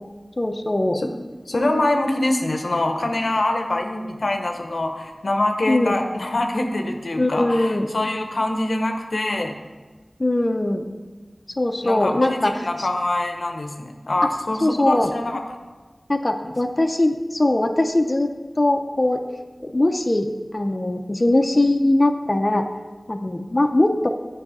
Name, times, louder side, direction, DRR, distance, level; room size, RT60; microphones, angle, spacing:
voice 1, 0.4-1.0 5.7-6.0 7.2-7.9 10.2-10.9 11.6-12.5 12.8-12.9 14.2-14.3 14.6-15.1 16.1-18.3 18.6-19.2 19.6-20.3 20.5-22.6 23.1-24.1, left 1 dB, 40° left, 5 dB, 0.5 m, -20 dB
voice 2, 1.5-9.5 11.8-15.4 16.4-16.5, left 2 dB, 90° left, 4 dB, 0.7 m, -24 dB
8.8 x 4.8 x 4.8 m, 1.3 s
wide cardioid pair, 55°, 0 cm